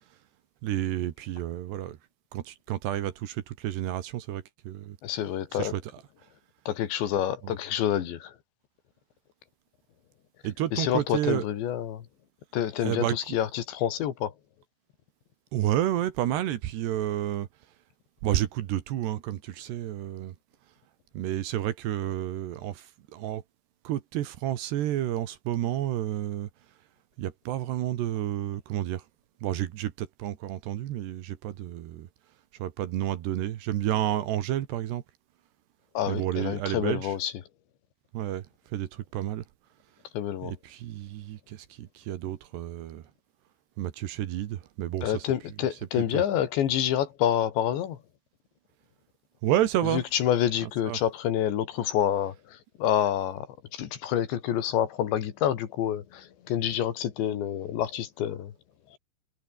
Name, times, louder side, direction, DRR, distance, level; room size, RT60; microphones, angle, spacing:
voice 1, 0.6-2.0 2.3-5.0 5.6-5.8 7.4-7.5 10.4-11.4 12.8-13.2 15.5-17.5 18.2-20.3 21.1-22.9 23.1-23.4 23.8-26.5 27.2-29.0 29.4-32.1 32.6-35.0 36.1-37.1 38.1-38.4 38.7-39.4 40.4-43.0 43.8-45.3 46.1-46.2 49.4-50.0 50.9-51.0, right 12 dB, 70° right, 3.4 m, -30 dB
voice 2, 5.0-5.7 6.7-8.3 10.7-12.0 12.5-14.3 36.0-37.3 40.1-40.5 45.0-48.0 49.8-53.5 53.7-58.5 58.9-59.0, left 10 dB, 70° left, 4.4 m, -28 dB
omnidirectional pair, 5.4 m